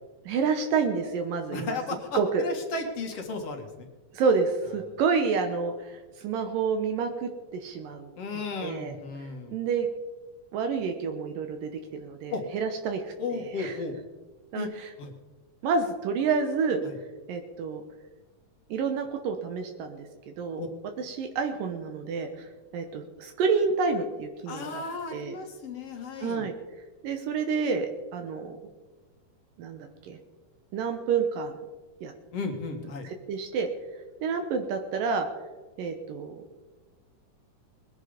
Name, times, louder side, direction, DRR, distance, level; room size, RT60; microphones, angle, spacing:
voice 1, 0.3-1.8 2.1-2.4 4.1-8.1 8.6-9.0 9.5-9.9 10.5-13.8 14.5-14.9 15.6-16.8 17.3-17.8 18.7-20.1 20.4-20.6 21.0-24.8 25.1-25.4 26.2-26.5 27.0-28.6 29.6-30.2 30.7-31.5 32.0-32.1 33.3-33.7 34.2-35.3 35.8-36.4, right 5 dB, 75° right, 5 dB, 2.7 m, -29 dB
voice 2, 1.5-3.9 8.2-9.6 12.3-12.4 13.2-14.0 14.5-14.7 15.0-15.1 16.8-17.0 20.6-20.7 24.5-26.5 32.3-33.1, left 3 dB, 50° left, 4 dB, 2.5 m, -34 dB
21.0 x 10.0 x 5.1 m, 1.2 s
omnidirectional pair, 4.0 m